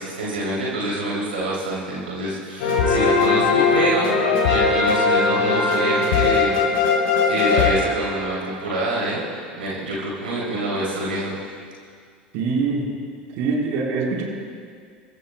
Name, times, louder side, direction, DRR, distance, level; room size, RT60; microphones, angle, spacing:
voice 1, 0.0-4.1 4.4-6.6 7.2-9.2 9.6-11.4, right 2 dB, 90° right, -6 dB, 2.8 m, -26 dB
sound 1, 2.6-8.5, left 4 dB, 70° left, 4.2 m, -19 dB
voice 2, 12.3-12.9 13.4-14.2, right 4 dB, 60° right, -2 dB, 3.9 m, -23 dB
29.5 x 14.5 x 2.2 m, 2.1 s
hypercardioid pair, 80°, 5 cm